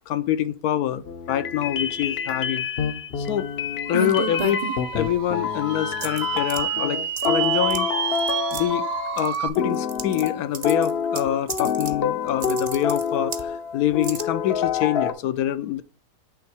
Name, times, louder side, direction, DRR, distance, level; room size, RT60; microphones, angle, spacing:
voice 1, 0.1-2.7 3.2-3.5 3.9-4.6 4.9-7.9 8.5-8.9 9.2-15.8, left 11 dB, 75° left, 1.1 m, -25 dB
sound 1, 1.1-9.3 9.6-15.1, left 7 dB, 55° left, 0.7 m, -27 dB
sound 2, 3.9-5.2 6.0-6.6 7.2-7.4 7.7-7.8 8.1-8.6 9.2-10.3 10.5-12.0 12.3-13.5 14.0-14.2, right 3 dB, 40° right, 0.6 m, -31 dB
sound 3, 3.9-9.5, right 10 dB, 70° right, 1.0 m, -29 dB
8.4 x 3.5 x 4.6 m
omnidirectional pair, 1.7 m